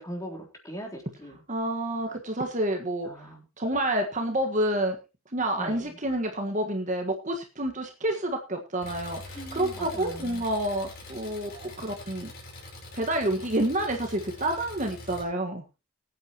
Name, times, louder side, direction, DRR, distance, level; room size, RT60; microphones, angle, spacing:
voice 1, 0.0-1.4 3.1-3.4 5.5-5.9 9.3-10.5, equal, 15° left, 0 dB, 3.6 m, -40 dB
voice 2, 1.5-3.1 3.6-5.0 5.3-12.3 12.9-15.6, right 1 dB, 35° right, 4 dB, 1.6 m, -29 dB
Engine, 8.8-15.2, left 2 dB, 45° left, 5.0 m, -44 dB
21.5 x 9.1 x 3.0 m, 0.29 s
head